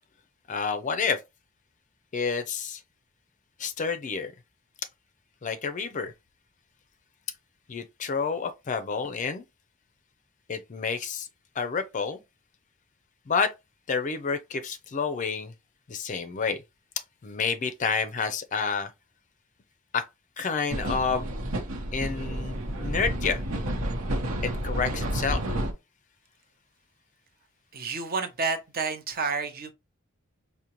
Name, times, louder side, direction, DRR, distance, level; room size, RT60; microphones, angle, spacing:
voice 1, 0.5-1.2 2.1-2.8 3.6-4.3 5.4-6.1 7.7-9.4 10.5-11.3 11.6-12.2 13.3-13.5 13.9-15.5 15.9-16.6 17.2-18.9 19.9-20.0 20.4-21.3 21.9-23.4 24.4-25.4, left 5 dB, 35° left, 0.4 m, -29 dB
sound 1, 20.7-25.7, right 1 dB, 80° right, 0.9 m, -30 dB
voice 2, 27.7-29.7, right 4 dB, 45° right, 0.7 m, -30 dB
5.0 x 2.1 x 2.9 m
head